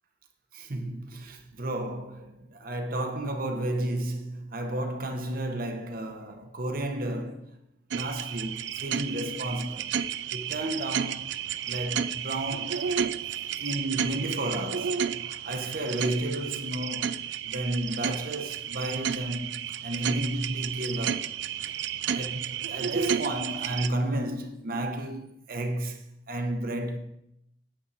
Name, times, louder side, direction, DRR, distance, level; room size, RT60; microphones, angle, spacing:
voice 1, 0.5-7.5 7.9-9.9 10.3-11.4 11.7-12.8 13.6-17.2 17.4-19.5 19.8-21.3 22.1-27.0, right 1 dB, 50° right, 1.1 m, -32 dB
sound 1, 7.9-23.9, right 8 dB, 75° right, 0.4 m, -32 dB
9.0 x 8.2 x 4.2 m
head